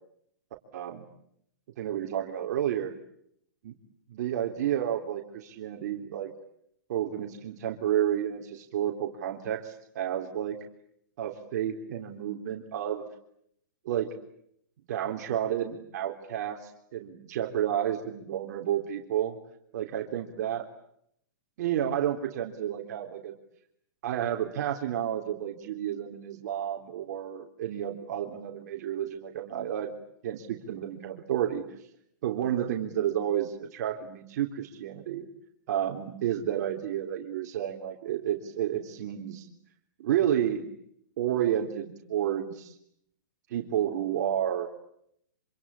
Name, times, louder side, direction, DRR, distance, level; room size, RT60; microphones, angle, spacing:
voice 1, 0.7-1.1 1.8-2.9 3.6-3.8 4.1-6.3 6.9-10.6 11.2-13.1 13.9-14.2 14.9-19.4 19.7-20.7 21.6-23.4 24.0-29.9 30.2-31.6 32.2-35.3 35.7-39.5 40.0-40.7 41.2-42.7 43.5-44.7, right 10 dB, 60° right, 3 dB, 3.6 m, -31 dB
26.5 x 26.5 x 8.4 m, 0.71 s
hypercardioid pair, 140°, 10 cm